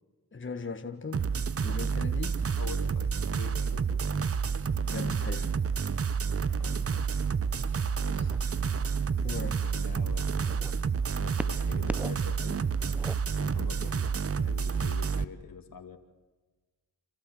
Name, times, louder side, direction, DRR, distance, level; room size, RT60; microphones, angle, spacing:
voice 1, 0.3-1.3 1.6-2.7 4.8-5.5 9.2-9.7, left 4 dB, 35° left, 6 dB, 1.7 m, -39 dB
sound 1, 1.1-15.2, right 6 dB, 40° right, 0.9 m, -29 dB
voice 2, 2.6-4.0 6.5-7.2 7.9-8.4 9.7-10.6 11.1-12.6 13.3-14.1 14.3-16.0, left 6 dB, 70° left, 6 dB, 2.5 m, -45 dB
sound 2, 8.3-8.6 9.4-10.7 11.3-12.3 12.6-13.9 14.8-14.9, right 1 dB, 5° right, 0.7 m, -40 dB
29.5 x 13.5 x 7.8 m, 1.3 s
cardioid pair, 60°, 36 cm